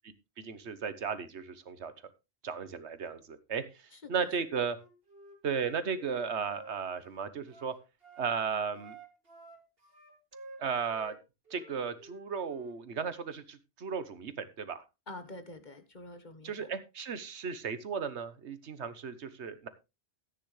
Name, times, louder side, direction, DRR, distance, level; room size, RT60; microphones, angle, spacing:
voice 1, 0.4-1.9 2.4-3.6 4.1-4.8 5.4-7.7 8.2-8.9 10.6-11.1 11.5-14.8 16.4-19.7, right 6 dB, 85° right, 12 dB, 1.4 m, -35 dB
voice 2, 3.9-4.3 15.1-16.7, left 2 dB, 45° left, 9 dB, 1.5 m, -47 dB
Wind instrument woodwind instrument, 4.6-8.3 8.7-11.2 11.5-12.8, right 3 dB, 60° right, 2.9 m, -52 dB
14.0 x 9.3 x 3.3 m, 0.26 s
omnidirectional pair, 1.1 m